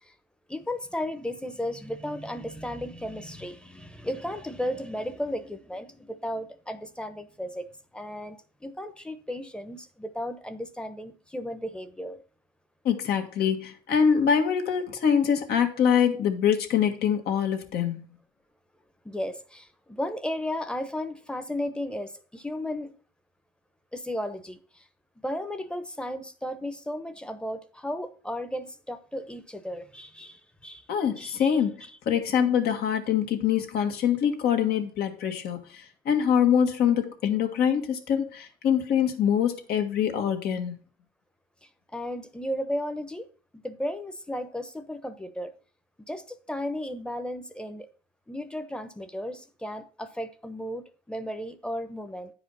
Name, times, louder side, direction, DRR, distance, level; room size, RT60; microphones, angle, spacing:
voice 1, 0.5-7.6 7.9-12.2 19.0-22.9 23.9-24.8 25.2-30.8 31.2-31.5 41.9-43.3 43.5-45.5 46.1-47.9 48.3-52.3, left 1 dB, 5° left, 0.9 m, -34 dB
voice 2, 12.8-18.0 30.9-40.8, left 8 dB, 70° left, 1.7 m, -24 dB
9.7 x 5.0 x 5.5 m
cardioid pair, 110°, 17 cm